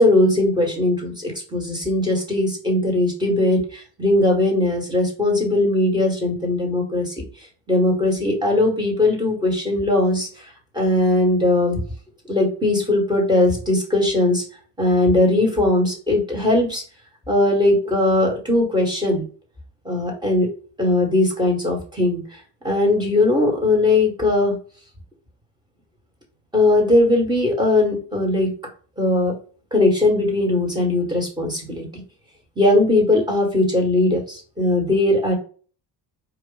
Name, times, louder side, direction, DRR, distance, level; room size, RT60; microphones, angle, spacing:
voice 1, 0.0-7.1 7.7-10.3 10.7-11.8 12.3-14.4 14.8-16.8 17.3-19.2 19.8-20.5 20.8-22.2 22.6-24.6 26.5-28.5 29.0-29.3 29.7-31.9 32.6-35.3, left 2 dB, 10° right, -1 dB, 1.5 m, -19 dB
4.7 x 2.5 x 3.9 m, 0.40 s
cardioid pair, 155°, 43 cm